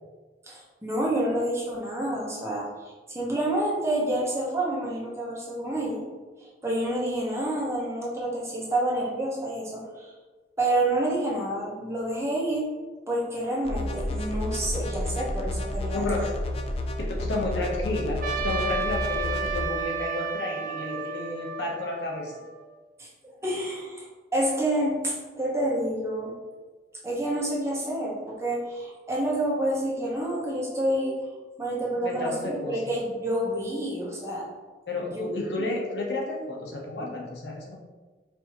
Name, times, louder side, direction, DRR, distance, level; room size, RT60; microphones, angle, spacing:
voice 1, 0.5-2.7 3.1-6.0 6.4-10.1 10.6-12.7 13.1-16.1 23.0-23.1 23.4-26.3 27.0-31.2 31.6-34.4 35.0-35.7, right 1 dB, 15° right, -5 dB, 0.8 m, -28 dB
sound 1, 13.6-19.6, left 1 dB, 35° left, 0.3 m, -31 dB
voice 2, 15.9-16.3 17.0-22.3 31.9-32.8 34.9-37.7, left 2 dB, 80° left, -1 dB, 0.8 m, -31 dB
Trumpet, 18.2-22.7, right 4 dB, 50° right, 0.5 m, -32 dB
4.4 x 2.6 x 2.9 m, 1.3 s
head